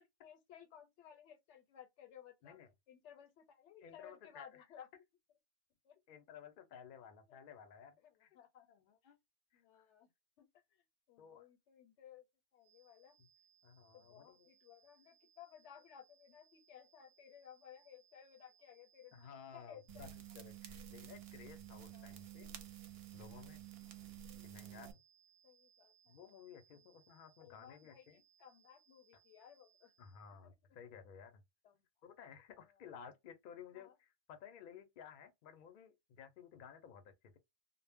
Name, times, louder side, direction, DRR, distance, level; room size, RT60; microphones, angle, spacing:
voice 1, 0.2-2.6 2.9-4.9 5.8-6.0 7.3-7.4 8.0-8.7 9.0-9.1 9.5-10.1 10.4-12.3 12.5-13.1 13.9-20.2 21.9-22.3 23.8-24.1 25.4-26.2 26.7-26.8 27.4-29.9 31.6-31.9 33.7-33.9, left 9 dB, 80° left, 0.9 m, -59 dB
voice 2, 3.8-4.6 6.1-8.4 8.7-9.2 9.5-9.9 11.2-11.4 13.6-14.5 19.1-20.1 20.3-22.6 23.1-23.6 24.4-24.9 26.1-28.2 30.0-31.4 32.0-37.4, left 7 dB, 60° left, 0.6 m, -56 dB
sound 1, 12.6-30.3, right 8 dB, 5° right, 0.7 m, -72 dB
sound 2, 19.9-24.9, right 10 dB, 65° right, 0.7 m, -52 dB
2.0 x 2.0 x 3.3 m
omnidirectional pair, 1.2 m